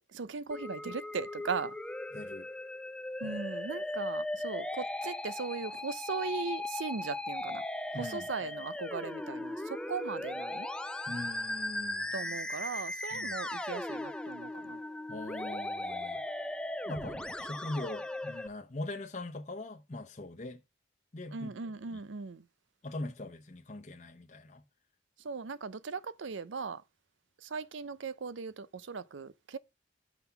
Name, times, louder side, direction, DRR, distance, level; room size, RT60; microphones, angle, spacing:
voice 1, 0.1-1.8 3.2-7.6 8.0-10.7 12.1-14.8 16.9-17.2 21.3-22.4 25.2-26.8 27.4-29.6, right 5 dB, 85° right, 0.6 m, -38 dB
Musical instrument, 0.5-18.5, left 1 dB, 5° left, 0.4 m, -38 dB
voice 2, 2.1-2.5 3.2-3.4 7.9-8.3 11.1-12.1 13.1-13.3 15.1-16.2 16.9-20.6 21.1-21.5 21.9-22.0 22.8-24.6, left 2 dB, 40° left, 0.8 m, -41 dB
5.9 x 5.7 x 5.6 m
head